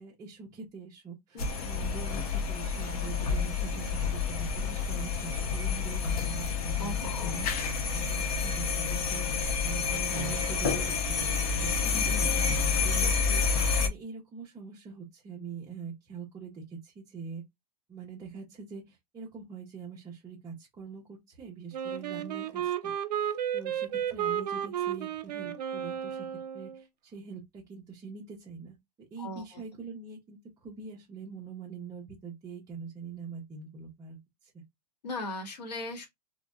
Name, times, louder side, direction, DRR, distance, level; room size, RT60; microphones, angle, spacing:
voice 1, 0.0-6.9 7.2-17.4 17.9-26.3 26.5-34.5, right 6 dB, 15° right, 0.6 m, -44 dB
voice 2, 1.3-1.7 6.8-7.5 11.9-12.2 21.9-22.0 29.2-29.6 35.0-36.1, left 2 dB, 90° left, 1.0 m, -38 dB
sound 1, 1.4-13.9, left 5 dB, 60° left, 0.8 m, -29 dB
Wind instrument woodwind instrument, 21.7-26.8, right 10 dB, 85° right, 0.5 m, -33 dB
2.7 x 2.0 x 2.2 m
hypercardioid pair, 140°, 21 cm